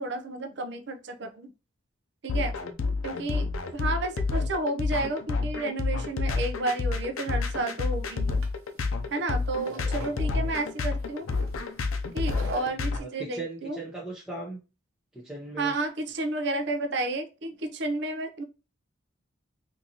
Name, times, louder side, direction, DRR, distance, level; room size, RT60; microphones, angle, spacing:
voice 1, 0.0-1.5 2.2-2.5 3.0-3.5 3.7-8.4 9.1-11.3 12.1-13.8 15.6-18.4, right 2 dB, 55° right, 6 dB, 0.5 m, -31 dB
sound 1, 2.3-13.0, left 4 dB, 80° left, 0.5 m, -29 dB
sound 2, 7.3-12.7, equal, 80° right, 1.0 m, -45 dB
voice 2, 9.7-10.5 12.3-12.5 12.8-14.6 15.1-15.7, right 2 dB, 5° right, -6 dB, 0.7 m, -40 dB
3.9 x 2.7 x 2.8 m, 0.30 s
head